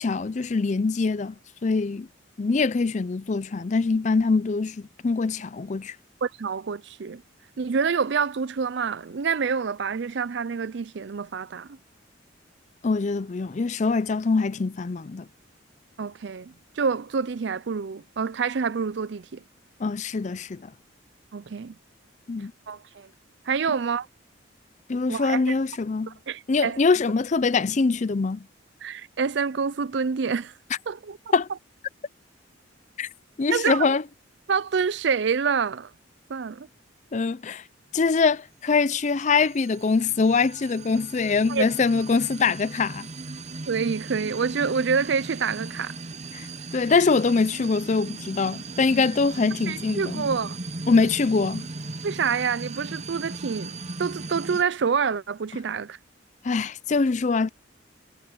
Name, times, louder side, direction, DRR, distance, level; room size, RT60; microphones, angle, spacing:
voice 1, 0.0-1.4 1.6-2.1 2.4-6.0 12.8-15.3 19.8-20.7 22.3-22.5 24.9-26.2 26.5-28.5 31.3-31.5 33.0-33.1 33.4-34.0 37.1-37.6 37.9-43.1 46.3-46.5 46.7-50.3 50.9-51.7 56.4-57.5, left 4 dB, 35° left, 0.4 m, -23 dB
voice 2, 6.2-7.2 7.6-11.8 16.0-19.4 21.3-21.8 22.7-23.1 23.5-24.1 25.1-25.4 26.1-26.8 28.8-30.5 30.9-31.2 33.5-33.9 34.5-35.9 36.3-36.7 41.5-41.6 43.7-45.9 49.7-50.6 52.0-56.0, right 5 dB, 60° right, 0.5 m, -27 dB
sound 1, 38.9-54.6, right 3 dB, 35° right, 0.9 m, -37 dB
head